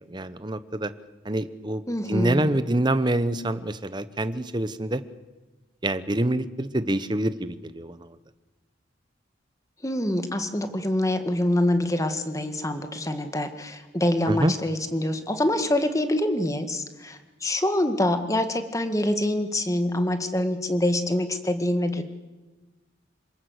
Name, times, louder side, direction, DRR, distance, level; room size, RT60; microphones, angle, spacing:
voice 1, 0.1-0.9 1.2-1.8 2.1-5.0 5.8-8.2 14.3-14.5, right 1 dB, 25° right, 13 dB, 0.9 m, -26 dB
voice 2, 1.9-2.5 9.8-22.0, left 1 dB, 15° left, 8 dB, 1.7 m, -25 dB
27.5 x 19.5 x 8.1 m, 1.2 s
head